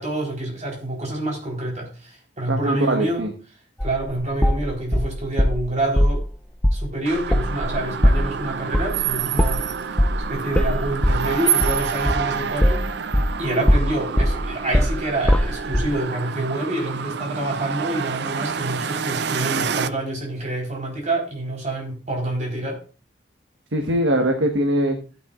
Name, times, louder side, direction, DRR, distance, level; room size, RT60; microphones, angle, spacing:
voice 1, 0.0-3.3 3.8-6.2 6.7-10.0 10.3-13.1 13.4-22.8, right 1 dB, 40° right, -1 dB, 4.2 m, -27 dB
voice 2, 2.5-3.3 23.7-25.0, right 1 dB, 90° right, 3 dB, 1.4 m, -21 dB
sound 1, 3.8-5.6 6.0-6.2 6.6-6.8 7.1-13.4 13.7-15.9, equal, 5° left, 0.4 m, -20 dB
sound 2, 7.1-19.9, right 7 dB, 65° right, 0.5 m, -28 dB
14.5 x 9.1 x 2.5 m, 0.36 s
head